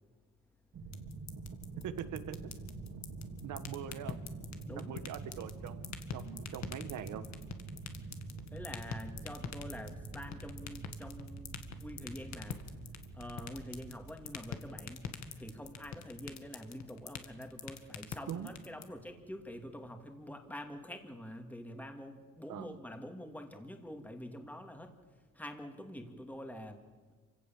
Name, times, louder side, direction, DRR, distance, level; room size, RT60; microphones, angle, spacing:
sound 1, 0.7-19.9, right 3 dB, 60° right, 3.5 m, -48 dB
sound 2, 0.9-18.8, left 9 dB, 65° left, 1.9 m, -41 dB
voice 1, 1.8-2.4 3.4-4.2 4.8-7.3 18.3-18.5 22.5-22.8, right 9 dB, 80° right, 12 dB, 1.5 m, -42 dB
voice 2, 8.5-12.6 13.1-15.1 15.3-27.1, equal, 5° left, 5 dB, 2.5 m, -46 dB
27.0 x 17.0 x 7.4 m, 1.4 s
cardioid pair, 90°, 30 cm